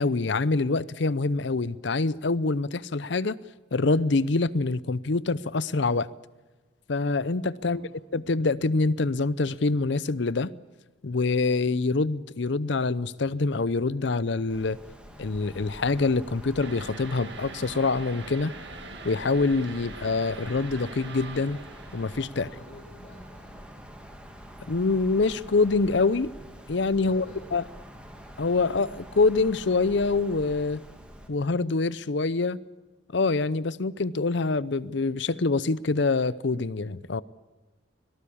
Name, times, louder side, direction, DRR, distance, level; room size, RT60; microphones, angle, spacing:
voice 1, 0.0-3.4 3.7-6.1 6.9-7.8 8.1-10.5 11.0-14.8 15.2-18.5 19.0-21.6 21.9-22.5 24.7-26.3 26.7-27.3 27.5-27.6 28.4-30.8 31.3-32.6 33.1-37.2, left 3 dB, 60° left, 0.6 m, -25 dB
Wind, 14.5-31.3, equal, 5° right, 2.5 m, -46 dB
sound 1, 16.6-22.3, right 3 dB, 60° right, 2.5 m, -43 dB
voice 2, 22.3-23.8 27.0-27.4, left 1 dB, 30° left, 5.4 m, -50 dB
25.0 x 18.0 x 8.7 m
head